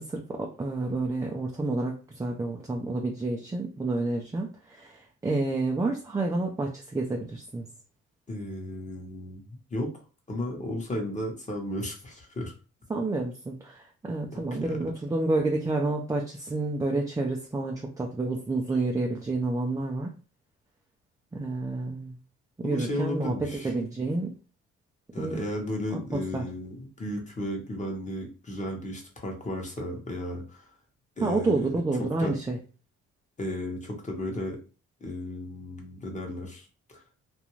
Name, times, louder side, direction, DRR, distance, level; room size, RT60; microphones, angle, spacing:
voice 1, 0.0-7.7 12.9-20.1 21.3-22.2 22.6-24.3 25.2-25.4 25.9-26.5 31.2-32.6, right 2 dB, 10° right, 1 dB, 0.4 m, -29 dB
voice 2, 8.3-9.9 10.3-12.5 14.6-14.8 22.6-23.7 25.1-30.7 31.2-31.7 32.0-32.3 33.4-34.6 35.0-37.0, left 1 dB, 25° left, 1 dB, 0.9 m, -34 dB
2.5 x 2.2 x 3.0 m, 0.35 s
cardioid pair, 90°, 30 cm